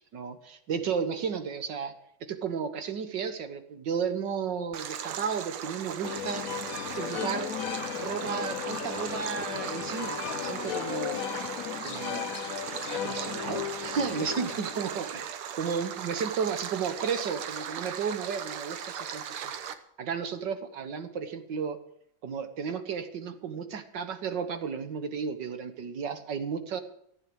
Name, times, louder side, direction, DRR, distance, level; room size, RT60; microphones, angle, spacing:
voice 1, 0.1-1.9 2.2-6.5 7.0-7.5 7.9-11.3 11.8-12.4 12.9-19.5 20.0-21.8 22.2-26.8, right 6 dB, 60° right, 9 dB, 1.8 m, -33 dB
Stream, 4.7-19.7, right 8 dB, 90° right, 1.9 m, -38 dB
sound 1, 6.0-15.2, left 10 dB, 85° left, 0.7 m, -36 dB
14.5 x 9.1 x 8.0 m, 0.71 s
omnidirectional pair, 2.3 m